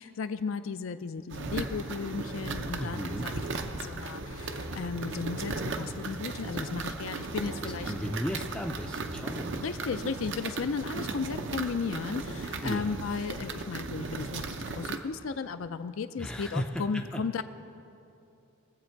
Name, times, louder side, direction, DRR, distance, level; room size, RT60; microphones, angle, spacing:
voice 1, 0.0-7.9 9.6-17.4, left 5 dB, 70° left, 10 dB, 0.4 m, -35 dB
sound 1, 1.3-15.0, right 3 dB, 60° right, 0.7 m, -36 dB
voice 2, 2.8-3.3 7.6-9.6 12.6-13.0 16.2-17.2, equal, 5° left, 1 dB, 0.5 m, -35 dB
22.0 x 7.7 x 4.6 m, 2.7 s
head